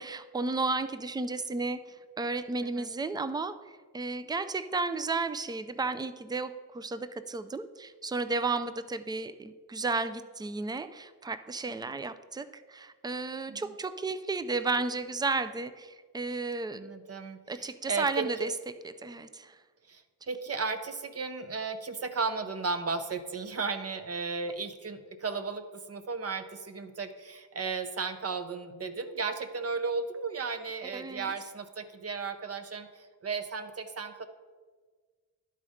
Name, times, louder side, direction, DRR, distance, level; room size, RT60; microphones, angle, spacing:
voice 1, 0.0-1.8 2.2-3.6 3.9-16.9 17.5-18.5 19.0-19.6 30.9-31.3, right 3 dB, 10° right, 12 dB, 0.3 m, -33 dB
voice 2, 16.7-18.3 19.9-34.3, right 4 dB, 35° right, 9 dB, 0.7 m, -35 dB
11.0 x 4.2 x 4.9 m, 1.5 s
cardioid pair, 90°, 41 cm